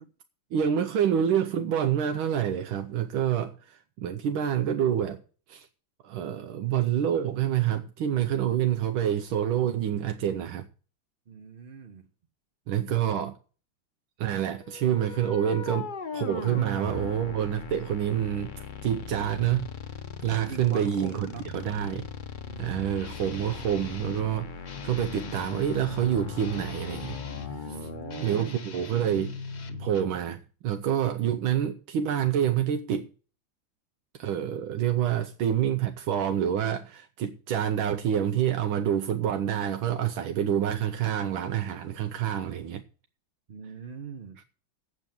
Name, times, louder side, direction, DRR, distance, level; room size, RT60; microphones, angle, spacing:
voice 1, 0.5-5.2 5.5-5.7 6.0-10.7 12.7-13.4 14.2-19.7 20.2-22.1 22.6-27.9 28.2-29.3 29.8-33.1 34.2-42.8 44.4-44.5, right 9 dB, 85° right, 1.6 m, -27 dB
voice 2, 11.3-12.1 20.4-21.4 22.5-22.8 27.6-28.8 29.7-29.8 43.5-44.4, right 6 dB, 50° right, 0.6 m, -41 dB
sound 1, 14.6-28.5, left 5 dB, 55° left, 0.5 m, -39 dB
Guitar, 23.0-24.3 24.6-27.6 28.0-30.2, left 5 dB, 40° left, 1.1 m, -41 dB
8.2 x 7.5 x 8.7 m
omnidirectional pair, 2.2 m